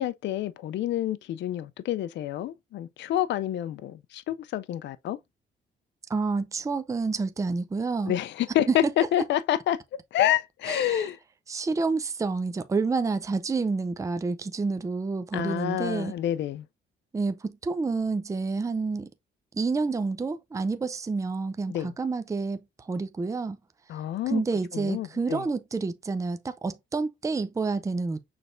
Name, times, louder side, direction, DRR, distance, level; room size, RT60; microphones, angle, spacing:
voice 1, 0.0-5.2 8.1-9.8 10.1-11.2 15.3-16.6 21.7-21.9 23.9-24.4 24.7-25.4, left 12 dB, 65° left, 0.4 m, -28 dB
voice 2, 6.1-8.1 8.7-8.9 10.7-11.1 11.5-16.1 17.1-19.1 19.5-23.6 24.3-28.2, right 4 dB, 15° right, 0.5 m, -29 dB
6.1 x 3.3 x 2.5 m
cardioid pair, 90°, 20 cm